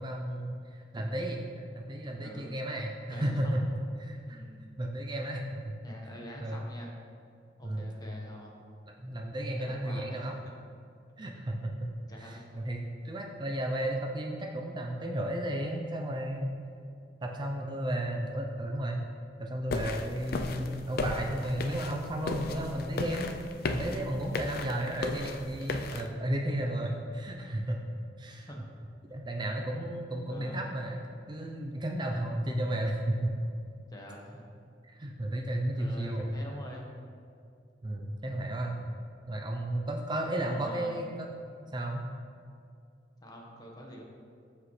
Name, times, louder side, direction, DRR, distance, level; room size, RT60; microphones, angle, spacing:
voice 1, 0.0-3.6 4.0-4.4 4.8-5.7 6.4-6.6 7.6-7.9 9.0-10.3 11.2-16.5 17.2-19.0 19.4-23.3 23.7-27.8 28.2-28.5 29.1-31.0 31.3-33.3 34.9-36.3 37.8-38.8 39.3-41.3 41.7-42.0, right 1 dB, 25° right, 1 dB, 0.5 m, -33 dB
voice 2, 3.1-3.7 4.3-4.6 5.8-6.9 7.6-8.6 9.6-10.5 12.1-12.6 28.5-28.6 30.3-30.7 33.9-34.4 35.7-36.9 40.5-41.0 43.2-44.0, equal, 20° left, -1 dB, 1.2 m, -46 dB
sound 1, 19.7-26.1, left 3 dB, 55° left, 0.5 m, -36 dB
14.0 x 5.0 x 3.2 m, 2.4 s
head